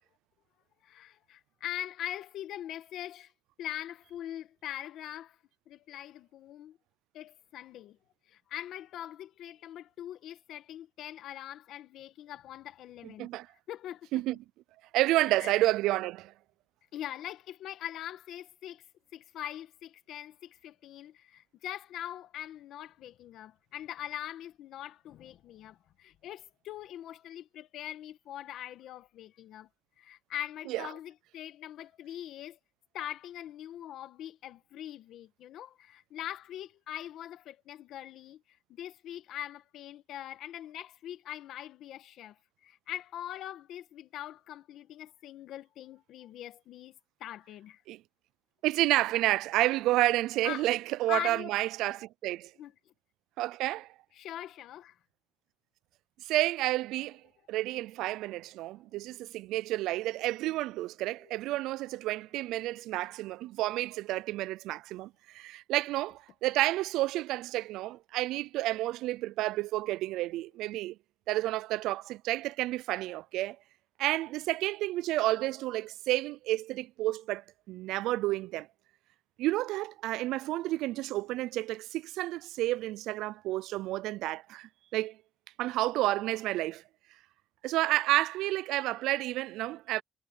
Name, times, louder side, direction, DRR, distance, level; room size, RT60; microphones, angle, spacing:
voice 1, 0.8-3.3 3.6-5.4 5.7-6.8 7.1-8.0 8.3-13.3 13.7-14.1 15.3-15.5 16.9-18.8 19.1-29.7 30.0-32.6 32.9-38.4 38.7-42.4 42.6-47.8 50.4-50.6 51.1-51.5 52.6-52.7 54.2-54.9 61.2-61.3, left 12 dB, 80° left, 1.7 m, -42 dB
voice 2, 13.0-13.5 14.1-14.4 14.9-16.3 30.7-30.9 47.9-48.0 48.6-52.5 53.4-53.9 56.2-57.2 57.5-71.0 71.3-73.6 74.0-78.7 79.4-85.2 85.6-86.8 87.6-90.0, right 16 dB, 90° right, 0.4 m, -30 dB
supercardioid pair, 70°, 0 cm